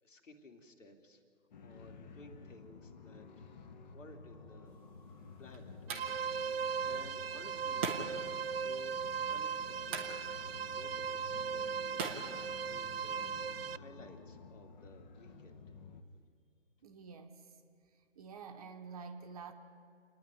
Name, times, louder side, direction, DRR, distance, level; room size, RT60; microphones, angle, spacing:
voice 1, 0.0-1.2 1.6-3.5 3.9-6.1 6.5-7.9 8.5-9.6 9.9-10.2 10.7-12.3 12.6-13.3 13.7-15.7, left 2 dB, 70° left, 4 dB, 3.0 m, -56 dB
sound 1, 1.5-16.0, left 4 dB, 35° left, 1.3 m, -52 dB
sound 2, 4.7-13.2, right 5 dB, 10° right, 0.6 m, -45 dB
sound 3, 5.9-13.8, right 6 dB, 50° right, 0.4 m, -38 dB
voice 2, 16.8-17.5 18.1-19.5, right 5 dB, 30° right, 6 dB, 1.2 m, -48 dB
28.5 x 9.9 x 9.7 m, 2.5 s
hypercardioid pair, 150°, 39 cm